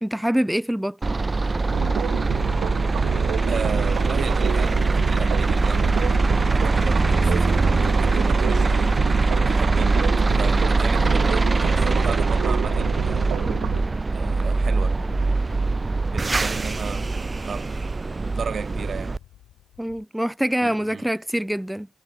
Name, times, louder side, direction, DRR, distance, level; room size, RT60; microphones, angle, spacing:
voice 1, 0.0-1.0 13.4-13.7 19.8-21.9, equal, 5° right, 1.0 m, -25 dB
sound 1, 1.0-19.2, right 3 dB, 35° right, 0.6 m, -22 dB
sound 2, 1.7-13.8, right 12 dB, 85° right, 0.9 m, -30 dB
voice 2, 3.5-5.9 6.3-9.0 9.4-13.5 14.1-15.0 15.2-15.5 16.1-17.8 18.2-19.2 20.6-21.0, right 6 dB, 60° right, 3.0 m, -34 dB
Fowl / Bird, 18.8-20.0, left 13 dB, 90° left, 4.4 m, -48 dB
supercardioid pair, 55°, 0 cm